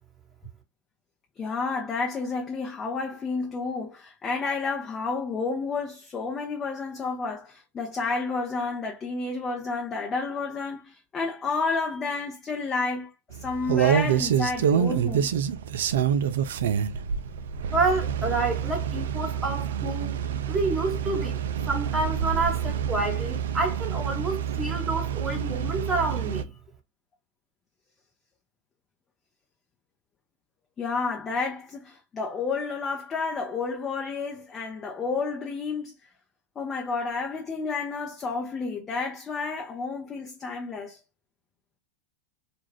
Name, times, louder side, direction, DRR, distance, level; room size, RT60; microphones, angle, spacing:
voice 1, 1.4-15.4 30.8-35.9 36.6-41.0, left 4 dB, 25° left, 0.6 m, -30 dB
sound 1, 13.3-26.4, right 8 dB, 70° right, 0.3 m, -27 dB
voice 2, 17.7-20.1 20.5-21.4 21.7-26.5, right 3 dB, 20° right, 1.1 m, -28 dB
2.4 x 2.3 x 3.2 m
hypercardioid pair, 100°, 0 cm